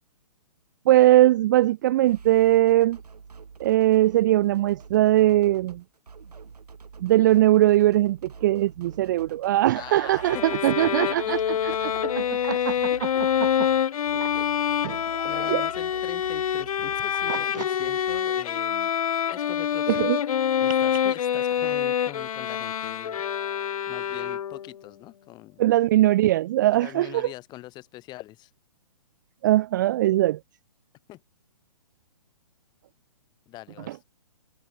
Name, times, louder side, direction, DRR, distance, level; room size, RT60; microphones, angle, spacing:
voice 1, 0.9-3.0 3.6-5.8 7.0-11.7 12.4-12.7 13.0-13.1 13.4-13.5 14.8-15.6 17.3-17.6 19.9-20.2 25.6-27.3 29.4-30.4, right 15 dB, 30° right, 0.4 m, -21 dB
sound 1, 2.1-18.2, right 5 dB, 90° right, 4.4 m, -46 dB
voice 2, 9.7-12.0 12.9-13.2 13.6-13.7 14.3-14.5 15.2-18.9 19.3-20.1 20.6-23.2 23.9-25.6 26.7-28.5 31.1-31.2 33.5-34.0, left 17 dB, 20° left, 3.5 m, -43 dB
Bowed string instrument, 10.2-24.7, left 9 dB, 65° left, 1.0 m, -26 dB
hypercardioid pair, 150°, 20 cm